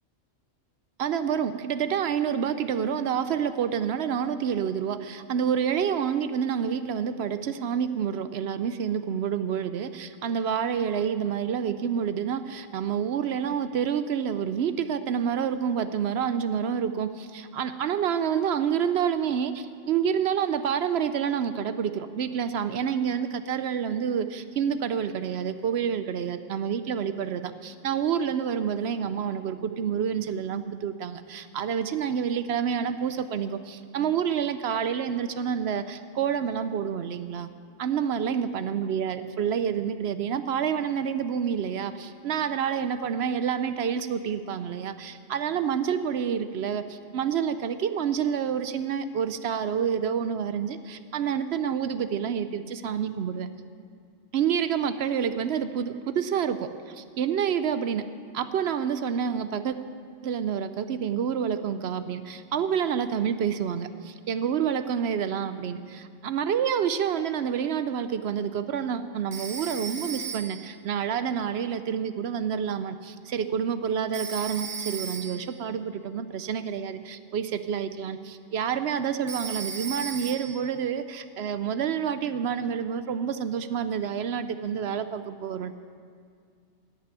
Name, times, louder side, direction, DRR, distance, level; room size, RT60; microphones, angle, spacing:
voice 1, 1.0-37.5 37.8-53.5 54.3-59.8 60.2-85.7, right 8 dB, 65° right, 11 dB, 0.7 m, -28 dB
Telephone, 69.3-70.7 74.1-75.5 79.3-80.7, right 6 dB, 40° right, 1.2 m, -36 dB
16.5 x 6.1 x 9.0 m, 2.2 s
omnidirectional pair, 1.4 m